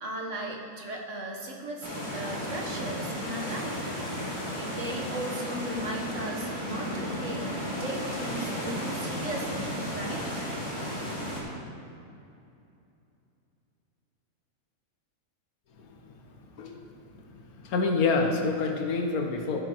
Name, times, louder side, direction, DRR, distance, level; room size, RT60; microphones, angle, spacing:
voice 1, 0.0-3.8 4.5-7.4 7.8-10.3, right 1 dB, 60° right, -1 dB, 1.5 m, -37 dB
sound 1, 1.8-11.4, equal, 20° left, 2.1 m, -34 dB
voice 2, 17.6-19.6, left 3 dB, 90° left, 3 dB, 1.5 m, -26 dB
14.5 x 7.3 x 3.1 m, 2.7 s
omnidirectional pair, 1.5 m